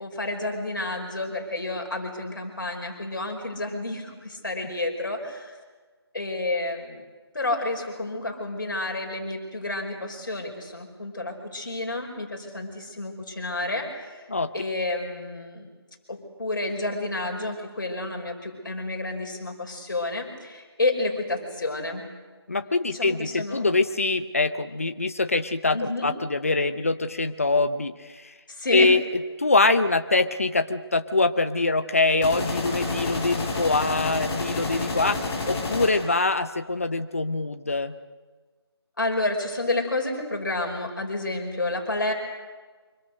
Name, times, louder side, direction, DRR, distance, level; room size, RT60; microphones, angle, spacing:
voice 1, 0.0-5.6 6.1-7.0 7.3-14.2 14.5-15.7 16.1-22.0 22.9-23.7 25.7-26.1 28.5-28.9 39.0-42.1, left 2 dB, 50° left, 2 dB, 5.3 m, -30 dB
voice 2, 22.5-28.3 28.7-29.0 29.4-35.2 35.5-37.9, left 3 dB, 35° left, 10 dB, 0.8 m, -24 dB
sound 1, 32.2-36.2, left 3 dB, 5° left, 0.9 m, -30 dB
25.5 x 24.0 x 6.5 m, 1.4 s
figure-of-eight pair, 175°, 14 cm